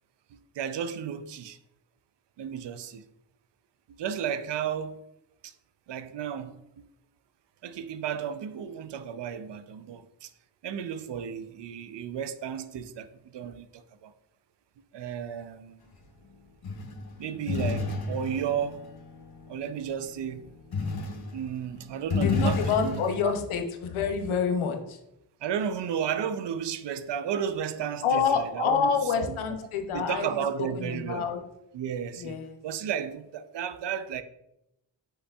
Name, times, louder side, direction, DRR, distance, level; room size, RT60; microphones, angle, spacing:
voice 1, 0.3-1.6 2.4-3.1 3.9-5.0 5.4-5.5 5.9-6.9 7.6-10.3 10.6-14.1 14.9-15.8 17.2-18.8 19.5-20.5 21.3-23.3 25.4-29.4 29.9-31.3 31.7-32.4 32.6-34.2, right 8 dB, 60° right, 0.5 m, -33 dB
sound 1, 16.6-19.8 20.7-21.4 21.8-23.3, left 4 dB, 50° left, 0.9 m, -30 dB
voice 2, 22.2-25.0 28.0-30.3 30.7-31.4 32.2-32.6, left 6 dB, 85° left, 0.7 m, -27 dB
5.3 x 3.8 x 2.3 m
cardioid pair, 40°, 48 cm